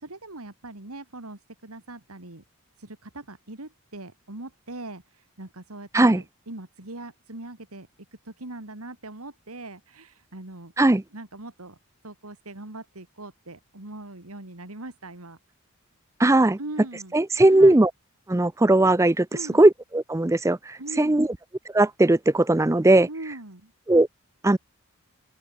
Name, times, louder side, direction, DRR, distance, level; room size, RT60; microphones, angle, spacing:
voice 1, 0.0-2.4 2.8-7.9 8.2-10.7 11.1-11.8 12.0-15.4 16.6-17.2 17.5-17.8 19.3-19.6 20.8-21.3 23.1-23.7, right 2 dB, 85° right, 2.9 m, -41 dB
voice 2, 16.2-16.6 17.1-17.9 18.3-19.3 19.5-21.3 21.7-23.1 23.9-24.1 24.4-24.6, right 2 dB, 15° right, 0.4 m, -18 dB
open air
head